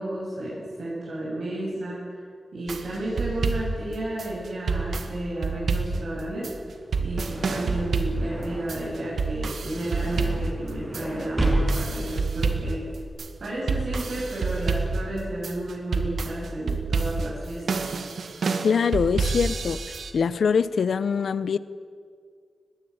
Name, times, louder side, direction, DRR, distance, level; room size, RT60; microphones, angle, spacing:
voice 1, 0.0-2.0 2.5-6.5 7.0-12.8 13.4-17.9, right 1 dB, 60° right, -6 dB, 7.9 m, -32 dB
sound 1, 2.7-20.1, right 4 dB, 85° right, 1.9 m, -28 dB
sound 2, 6.7-13.1, right 1 dB, 15° right, 7.4 m, -33 dB
voice 2, 18.6-19.8 20.1-21.6, left 6 dB, 75° left, 15 dB, 0.8 m, -23 dB
22.5 x 20.5 x 8.8 m, 2.1 s
wide cardioid pair, 175°, 0 cm